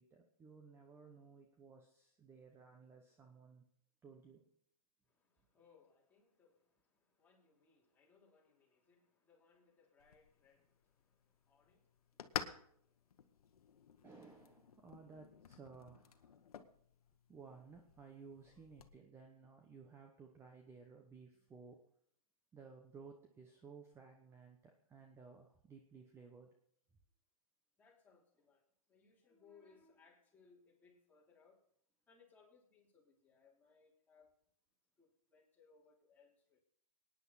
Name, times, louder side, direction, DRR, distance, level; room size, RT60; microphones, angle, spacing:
voice 1, 0.0-3.7 4.0-4.4 14.0-16.3 17.3-21.8 22.5-26.5, right 5 dB, 15° right, 3 dB, 1.1 m, -57 dB
voice 2, 5.0-14.0 27.8-31.6 32.1-34.3 35.0-36.6, left 5 dB, 10° left, -4 dB, 3.5 m, -69 dB
sound 1, 10.0-19.0, left 8 dB, 80° left, 1.2 m, -51 dB
23.5 x 9.8 x 4.1 m, 0.66 s
hypercardioid pair, 140°, 19 cm